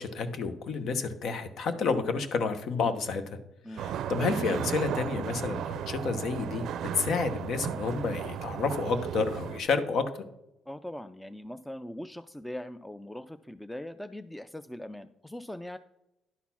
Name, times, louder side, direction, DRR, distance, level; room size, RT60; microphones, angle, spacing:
voice 1, 0.0-3.4 3.7-6.6 6.9-10.1, left 4 dB, 70° left, 10 dB, 0.9 m, -30 dB
sound 1, 3.8-9.6, right 9 dB, 75° right, 0.4 m, -35 dB
voice 2, 10.7-15.8, left 1 dB, 5° left, 11 dB, 0.4 m, -41 dB
11.0 x 4.2 x 5.8 m, 0.88 s
cardioid pair, 90°, 0 cm